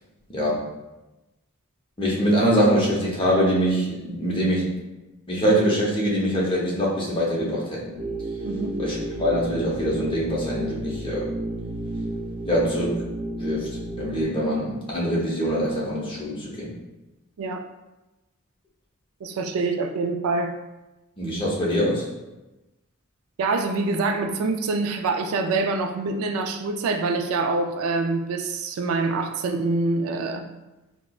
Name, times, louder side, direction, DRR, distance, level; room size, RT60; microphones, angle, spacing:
voice 1, 0.3-0.6 2.0-4.7 5.3-7.9 8.8-11.3 12.5-13.0 13.4-16.7 21.2-22.1, equal, 25° left, -5 dB, 0.7 m, -23 dB
sound 1, 7.9-14.2, right 1 dB, 35° right, 0.9 m, -32 dB
voice 2, 19.2-20.5 23.4-30.4, right 3 dB, 80° right, 6 dB, 0.3 m, -25 dB
4.2 x 2.0 x 2.3 m, 1.0 s
head